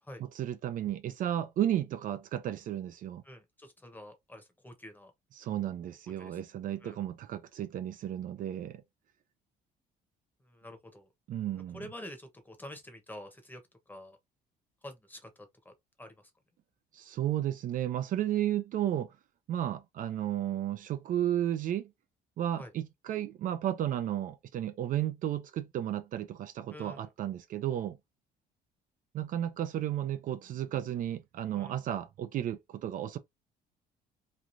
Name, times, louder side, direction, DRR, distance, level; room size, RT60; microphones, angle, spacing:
voice 1, 0.3-3.2 5.4-8.8 11.3-11.8 16.9-19.2 19.5-21.9 22.4-28.0 29.1-33.2, right 11 dB, 55° right, 0.4 m, -33 dB
voice 2, 3.2-5.1 6.2-6.4 6.8-7.0 10.4-11.1 11.7-13.6 13.9-14.2 14.8-15.7 16.0-16.3 22.6-22.7 26.7-27.1 31.5-31.8, left 1 dB, 10° left, 0.9 m, -47 dB
3.1 x 2.4 x 2.5 m
cardioid pair, 110°, 17 cm